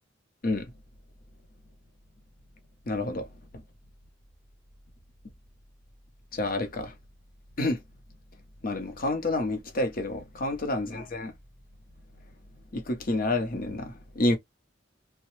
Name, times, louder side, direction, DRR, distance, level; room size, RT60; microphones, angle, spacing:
voice 1, 2.9-3.3 6.3-6.9 7.6-7.8 8.6-11.3 12.7-14.4, left 2 dB, 50° left, 0.8 m, -29 dB
2.8 x 2.2 x 3.1 m
head